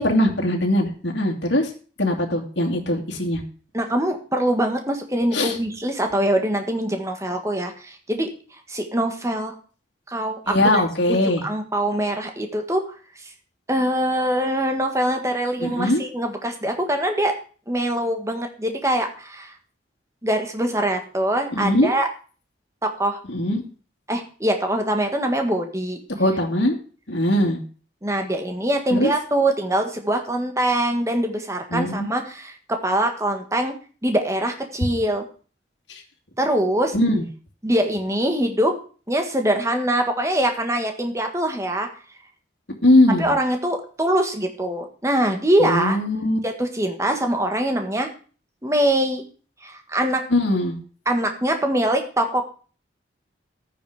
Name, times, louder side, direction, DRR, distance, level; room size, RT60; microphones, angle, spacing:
voice 1, 0.0-1.7 2.0-3.4 5.3-5.6 10.5-11.4 15.6-16.0 21.5-21.9 23.3-23.6 26.2-26.8 27.1-27.6 28.9-29.1 31.7-32.1 35.9-36.0 36.9-37.2 42.8-43.3 45.6-46.4 50.3-50.8, left 1 dB, 70° left, 2 dB, 2.6 m, -20 dB
voice 2, 3.7-8.3 8.7-9.5 10.1-10.6 11.1-11.2 11.4-12.8 13.2-13.3 13.7-17.3 17.7-19.5 20.2-22.1 22.8-23.2 24.1-26.0 28.0-33.7 34.0-35.2 36.4-36.9 37.6-38.7 39.1-41.9 43.2-46.0 46.4-48.1 48.6-49.2 49.6-50.2 51.0-52.5, right 1 dB, 15° right, 5 dB, 1.7 m, -23 dB
13.5 x 9.3 x 5.0 m, 0.40 s
head